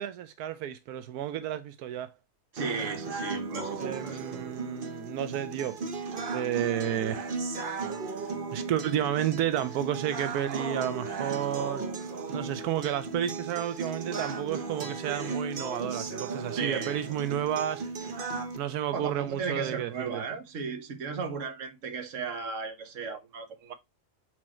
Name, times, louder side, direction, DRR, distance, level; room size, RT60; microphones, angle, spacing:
voice 1, 0.0-2.1 3.8-5.8 6.3-7.3 8.1-11.8 12.3-17.9 18.6-20.2, right 11 dB, 85° right, 1.2 m, -31 dB
voice 2, 2.5-4.4 16.6-17.0 18.9-23.7, right 5 dB, 55° right, 1.4 m, -35 dB
sound 1, 2.6-18.6, right 4 dB, 40° right, 1.0 m, -36 dB
6.1 x 4.3 x 4.2 m
omnidirectional pair, 1.6 m